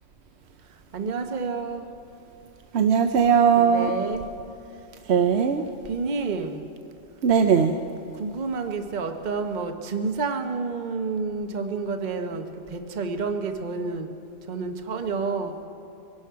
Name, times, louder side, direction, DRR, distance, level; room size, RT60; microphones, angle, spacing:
voice 1, 0.7-1.9 3.6-4.2 5.8-6.7 8.1-14.1 14.5-15.7, right 4 dB, 45° right, 6 dB, 1.0 m, -29 dB
voice 2, 2.7-3.9 5.1-5.6 7.2-7.8, right 7 dB, 70° right, 6 dB, 1.0 m, -19 dB
24.0 x 12.0 x 4.7 m, 2.8 s
omnidirectional pair, 1.2 m